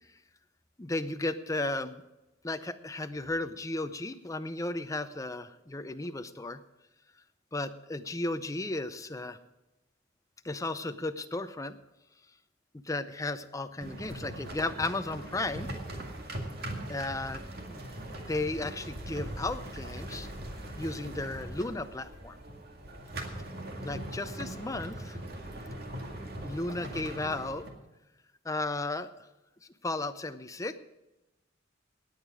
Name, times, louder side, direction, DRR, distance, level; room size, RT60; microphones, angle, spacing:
voice 1, 0.8-2.0 2.4-6.6 7.5-9.4 10.4-11.8 12.7-15.7 16.9-17.8 18.2-20.3 20.8-22.4 23.8-24.9 26.4-27.7 28.4-29.1 29.8-30.8, left 2 dB, 15° left, 10 dB, 0.6 m, -34 dB
sound 1, 13.8-27.7, right 1 dB, 55° right, 2.1 m, -40 dB
17.5 x 9.1 x 5.0 m, 0.99 s
head